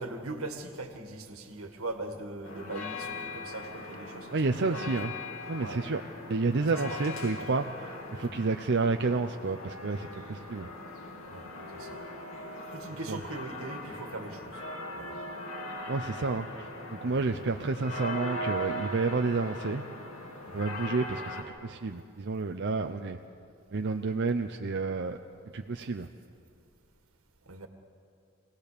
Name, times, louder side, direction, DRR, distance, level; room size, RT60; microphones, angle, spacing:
voice 1, 0.0-4.9 5.6-5.8 6.7-7.1 8.2-8.4 11.3-11.5 11.7-12.0 12.7-14.6 15.0-15.2 17.0-17.1 20.5-20.7 27.4-27.7, right 2 dB, 85° right, 5 dB, 1.8 m, -40 dB
sound 1, 2.4-21.4, left 1 dB, 75° left, 2.7 m, -40 dB
voice 2, 4.3-5.1 5.5-6.0 6.3-10.7 12.9-13.2 15.9-19.9 20.5-23.2 23.7-25.2 25.5-26.1, right 3 dB, 55° right, 5 dB, 0.7 m, -30 dB
25.0 x 17.5 x 6.8 m, 2.4 s
head